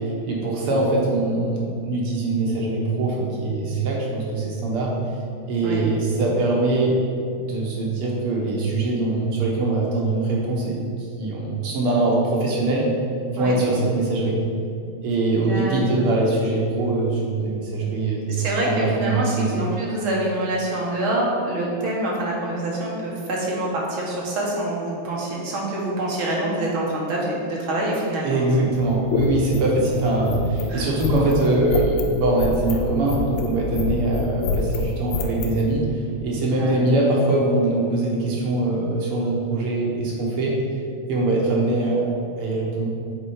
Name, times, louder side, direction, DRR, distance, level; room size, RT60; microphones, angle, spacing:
voice 1, 0.2-4.9 5.5-7.0 7.3-10.8 11.2-12.9 13.3-14.4 15.0-19.5 28.2-35.9 36.2-40.5 41.1-42.1 42.4-42.9, right 2 dB, 85° right, -3 dB, 2.1 m, -22 dB
voice 2, 15.5-15.8 18.4-28.4 30.7-30.9 36.6-36.8, right 1 dB, 70° right, -4 dB, 2.1 m, -26 dB
sound 1, 28.7-35.6, left 4 dB, 85° left, 1.6 m, -27 dB
7.3 x 4.3 x 4.9 m, 2.5 s
omnidirectional pair, 2.4 m